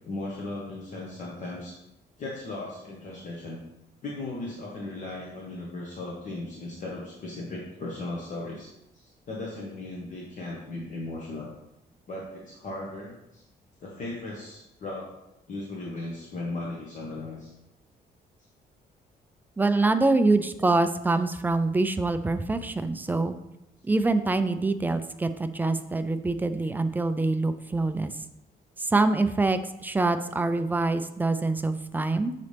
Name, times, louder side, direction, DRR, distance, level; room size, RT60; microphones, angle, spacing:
voice 1, 0.0-1.8 2.2-3.6 4.0-11.5 12.1-13.4 13.8-15.1 15.5-17.5, left 2 dB, 45° left, -3 dB, 1.1 m, -37 dB
voice 2, 19.6-23.4 23.8-28.1 28.8-32.3, right 3 dB, 10° right, 10 dB, 0.3 m, -25 dB
6.9 x 4.1 x 3.3 m, 0.86 s
cardioid pair, 140°, 17 cm